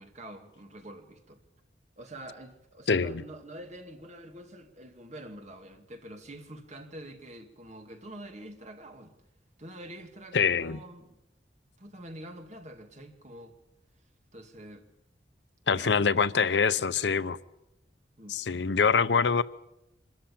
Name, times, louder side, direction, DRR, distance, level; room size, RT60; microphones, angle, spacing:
voice 1, 0.0-1.4 2.0-9.1 9.6-11.2 11.8-13.5 14.3-14.9 15.7-17.2 18.2-18.4, right 1 dB, 40° right, 2.3 m, -46 dB
voice 2, 2.9-3.2 10.3-10.8 15.7-17.4 18.3-19.4, left 5 dB, 80° left, 0.7 m, -25 dB
25.0 x 13.5 x 8.5 m
head